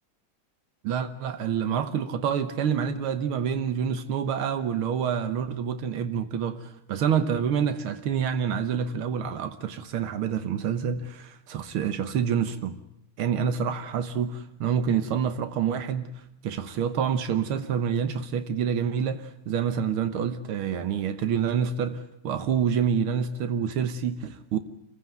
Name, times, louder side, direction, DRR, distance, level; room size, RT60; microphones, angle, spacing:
voice 1, 0.8-12.8 13.2-16.1 16.4-24.6, right 7 dB, 85° right, 2.0 m, -27 dB
28.0 x 15.5 x 9.1 m
omnidirectional pair, 2.3 m